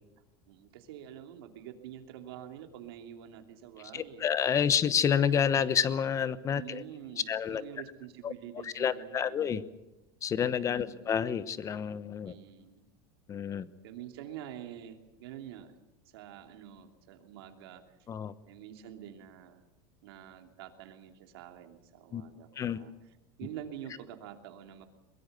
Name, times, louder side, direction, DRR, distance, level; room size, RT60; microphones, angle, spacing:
voice 1, 0.5-4.3 6.5-9.5 10.7-11.0 12.2-12.8 13.8-15.7 16.1-18.0 18.5-19.6 20.0-22.9 23.4-24.9, right 10 dB, 85° right, 5 dB, 2.9 m, -47 dB
voice 2, 3.9-6.8 7.3-7.6 8.2-8.3 8.6-9.6 10.2-12.3 13.3-13.7 18.1-18.3 22.1-22.2 22.6-22.8, left 8 dB, 25° left, 15 dB, 1.0 m, -29 dB
22.5 x 21.5 x 6.8 m, 0.99 s
supercardioid pair, 145°, 13 cm